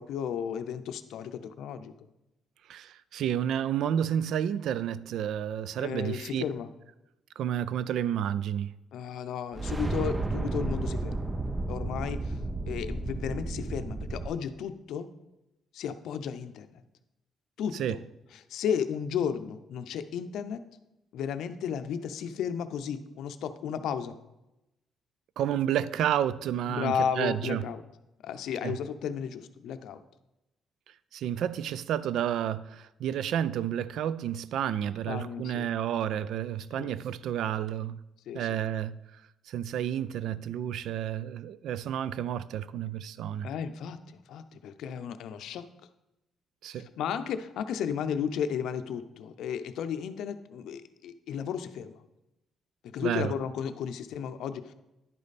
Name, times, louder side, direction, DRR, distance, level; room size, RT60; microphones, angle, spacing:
voice 1, 0.0-1.9 5.8-6.7 8.9-11.3 11.7-12.4 12.7-15.1 15.7-16.7 17.6-18.0 18.5-20.6 21.1-24.1 26.7-27.8 28.2-30.0 35.1-35.7 36.8-36.9 38.3-38.6 43.4-44.0 44.3-45.7 47.0-52.0 52.8-54.7, left 8 dB, 80° left, 0.5 m, -34 dB
voice 2, 2.7-6.4 7.4-8.7 17.7-18.0 25.4-27.7 28.6-28.8 31.1-38.0 38.3-39.0 39.5-43.5 46.6-46.9 53.0-53.3, right 10 dB, 75° right, 0.3 m, -30 dB
sound 1, 9.5-14.3, right 2 dB, 20° right, 0.5 m, -32 dB
10.5 x 5.2 x 4.1 m
cardioid pair, 100°, 0 cm